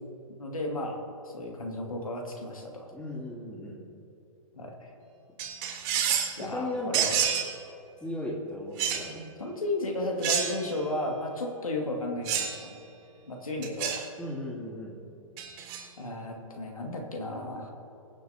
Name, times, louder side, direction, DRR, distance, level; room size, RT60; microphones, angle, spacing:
voice 1, 0.4-2.9 4.5-4.9 6.4-7.2 9.4-12.8 13.3-14.1 16.0-17.7, left 1 dB, 80° left, 1 dB, 2.1 m, -34 dB
voice 2, 2.9-3.8 6.4-7.1 8.0-9.3 14.2-15.0, left 1 dB, 5° left, -5 dB, 2.8 m, -36 dB
sound 1, 5.4-6.4 6.9-7.5 8.8-9.1 10.2-10.8 12.2-12.6 13.6-14.0 15.4-15.8, right 9 dB, 35° right, 1.6 m, -28 dB
22.0 x 7.6 x 2.8 m, 2.9 s
figure-of-eight pair, 120°, 18 cm